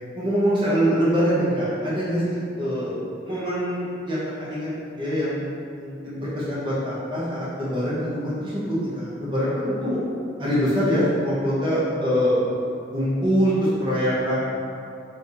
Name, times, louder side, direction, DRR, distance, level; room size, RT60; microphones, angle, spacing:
voice 1, 0.1-2.9 3.2-4.7 5.0-5.4 5.7-10.0 10.4-12.3 12.9-14.4, equal, 25° right, -10 dB, 1.1 m, -24 dB
4.5 x 3.4 x 2.7 m, 2.6 s
head